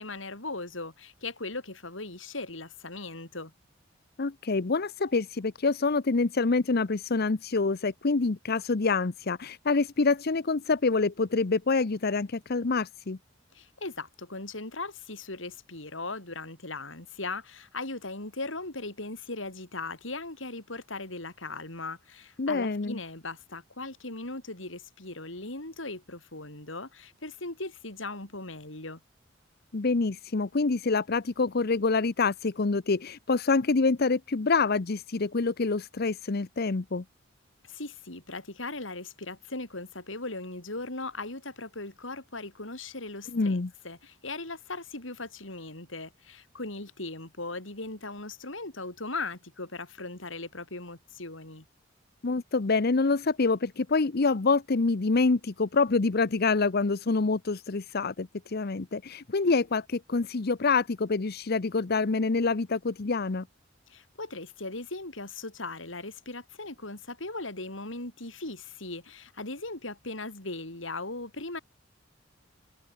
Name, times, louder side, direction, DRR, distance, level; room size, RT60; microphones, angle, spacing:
voice 1, 0.0-3.5 13.5-29.0 37.6-43.6 43.8-51.6 63.9-71.6, left 2 dB, 90° left, 6.5 m, -38 dB
voice 2, 4.2-13.2 22.4-23.0 29.7-37.0 43.3-43.7 52.2-63.4, left 4 dB, 55° left, 0.8 m, -26 dB
head